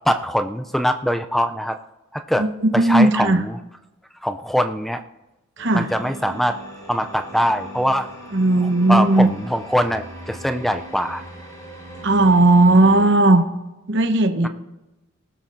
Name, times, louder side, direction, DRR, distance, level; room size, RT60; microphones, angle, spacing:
voice 1, 0.1-1.8 2.1-2.5 2.7-3.6 4.2-5.0 5.7-6.6 6.9-8.1 8.9-11.2, equal, ahead, 8 dB, 0.4 m, -22 dB
voice 2, 2.4-3.4 5.6-5.9 8.3-9.3 12.0-13.4 13.9-14.5, right 2 dB, 55° right, 7 dB, 1.0 m, -16 dB
sound 1, 5.6-13.1, right 1 dB, 20° left, 4.2 m, -39 dB
20.0 x 13.0 x 2.6 m, 1.0 s
head